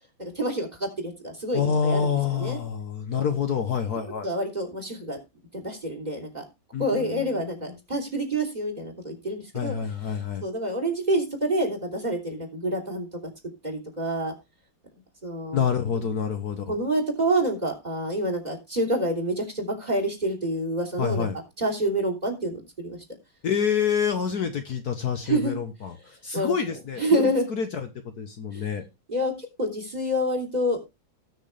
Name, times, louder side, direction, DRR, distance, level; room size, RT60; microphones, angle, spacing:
voice 1, 0.2-2.6 4.2-5.2 5.5-6.4 6.8-9.8 10.4-13.1 13.6-14.3 15.2-15.6 16.7-21.3 21.6-23.0 25.2-25.5 26.3-26.5 27.0-27.4 28.5-28.7 29.1-30.8, right 1 dB, 20° right, 3 dB, 3.4 m, -27 dB
voice 2, 1.5-4.3 6.7-7.8 9.5-10.4 15.5-16.8 21.0-21.3 23.4-25.9 26.2-27.0 27.5-27.9 28.2-28.8, left 7 dB, 60° left, 6 dB, 1.5 m, -27 dB
19.0 x 6.3 x 3.3 m, 0.24 s
omnidirectional pair, 2.1 m